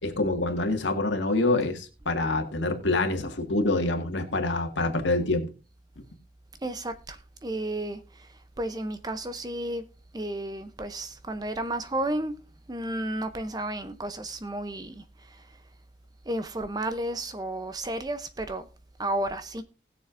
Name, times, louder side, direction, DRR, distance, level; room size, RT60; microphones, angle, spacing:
voice 1, 0.0-5.5, left 2 dB, 85° left, 1.8 m, -26 dB
voice 2, 6.6-8.3 8.6-9.8 10.1-12.4 12.7-15.5 16.3-18.7 19.0-19.6, right 1 dB, 20° right, 0.6 m, -32 dB
19.5 x 6.9 x 2.5 m
head